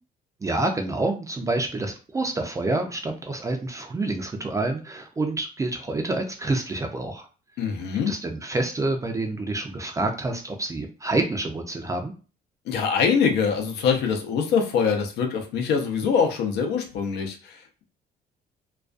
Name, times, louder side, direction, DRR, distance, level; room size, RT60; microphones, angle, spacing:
voice 1, 0.4-7.3 8.1-12.1, right 2 dB, 20° right, 4 dB, 0.3 m, -27 dB
voice 2, 7.6-8.1 12.7-17.8, left 6 dB, 80° left, 4 dB, 0.6 m, -24 dB
2.3 x 2.2 x 2.4 m, 0.35 s
cardioid pair, 110°, 17 cm